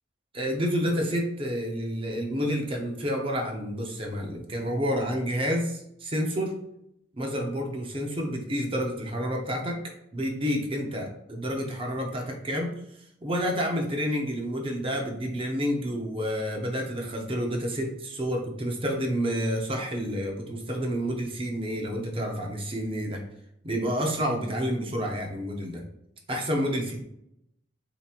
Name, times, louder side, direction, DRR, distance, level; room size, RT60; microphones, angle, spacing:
voice 1, 0.3-6.5 7.1-9.8 10.1-12.7 13.2-23.2 23.6-25.8 26.3-27.0, equal, 30° right, 2 dB, 0.8 m, -29 dB
6.9 x 3.0 x 2.5 m, 0.78 s
head